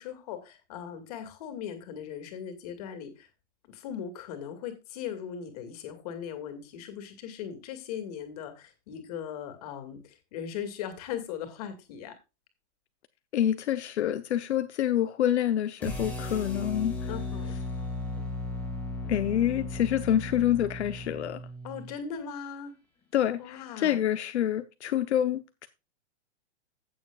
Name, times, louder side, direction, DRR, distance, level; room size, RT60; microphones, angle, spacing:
voice 1, 0.0-3.3 3.7-12.1 17.1-17.6 21.6-22.7 23.4-24.0, left 8 dB, 35° left, 2.3 m, -39 dB
voice 2, 13.3-17.1 19.1-21.4 23.1-25.7, left 11 dB, 70° left, 0.9 m, -27 dB
sound 1, 15.8-21.9, left 2 dB, 5° left, 1.8 m, -36 dB
16.0 x 7.0 x 2.4 m
supercardioid pair, 180°, 35 cm